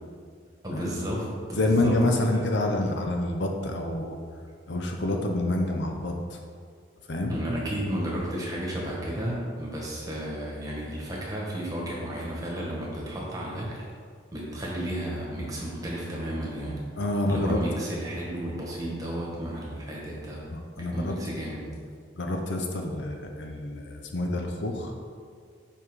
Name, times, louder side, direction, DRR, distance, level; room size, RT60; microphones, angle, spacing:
voice 1, 0.6-2.0 7.3-13.7 14.3-16.7 17.3-20.5 20.8-21.6, right 1 dB, 20° right, -4 dB, 1.4 m, -33 dB
voice 2, 1.6-4.2 4.7-6.4 7.1-7.4 17.0-17.6 20.5-21.1 22.2-24.9, left 1 dB, 70° left, 2 dB, 0.7 m, -27 dB
5.6 x 4.9 x 4.8 m, 2.1 s
head